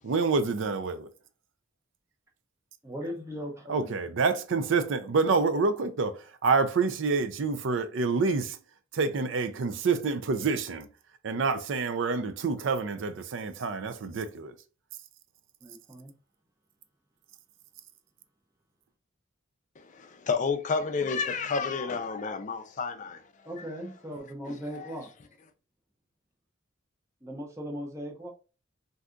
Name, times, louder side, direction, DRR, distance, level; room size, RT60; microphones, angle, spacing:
voice 1, 0.0-1.1 3.7-8.6 8.9-10.9 11.2-14.6, right 4 dB, 65° right, 0.4 m, -27 dB
voice 2, 2.8-3.9 15.6-16.1 23.4-25.3 27.2-28.3, equal, 15° right, 0.6 m, -38 dB
voice 3, 19.8-23.2 24.5-24.9, left 5 dB, 40° left, 0.4 m, -31 dB
2.7 x 2.3 x 3.6 m
head